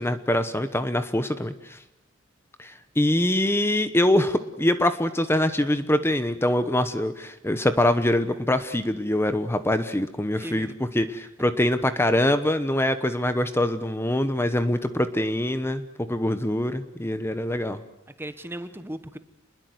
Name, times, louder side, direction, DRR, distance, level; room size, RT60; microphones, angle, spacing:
voice 1, 0.0-1.8 2.6-17.8, left 1 dB, 10° left, 11 dB, 1.0 m, -24 dB
voice 2, 10.4-10.7 18.2-19.2, right 1 dB, 10° right, 11 dB, 1.1 m, -36 dB
27.5 x 21.5 x 7.9 m, 0.83 s
head